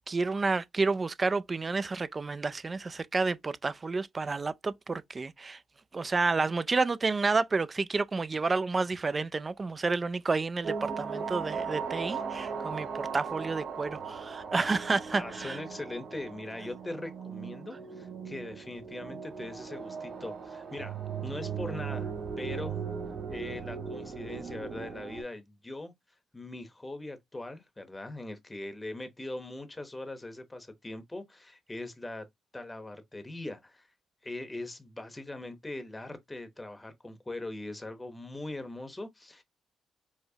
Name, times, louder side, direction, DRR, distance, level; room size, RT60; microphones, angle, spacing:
voice 1, 0.1-5.6 5.9-15.6, right 3 dB, 30° right, 0.3 m, -30 dB
sound 1, 10.6-25.2, right 6 dB, 70° right, 1.7 m, -38 dB
voice 2, 15.1-22.8 23.3-25.9 26.3-32.2 32.5-33.9 34.2-39.4, left 2 dB, 20° left, 0.8 m, -41 dB
4.8 x 2.0 x 2.7 m
cardioid pair, 80°, 0 cm